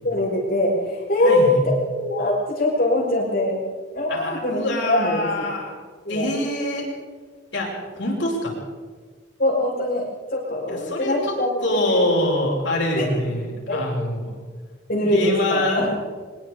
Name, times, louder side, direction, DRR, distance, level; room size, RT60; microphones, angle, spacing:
voice 1, 0.0-3.6 3.9-5.3 6.0-6.3 9.4-12.0 12.9-13.1 13.7-13.8 14.9-15.9, left 1 dB, 55° left, -8 dB, 6.0 m, -22 dB
voice 2, 1.2-1.6 4.1-5.7 6.1-6.9 7.5-8.5 10.7-11.3 11.6-14.3 15.0-15.8, left 1 dB, 70° left, -8 dB, 7.3 m, -25 dB
25.0 x 21.5 x 5.1 m, 1.5 s
head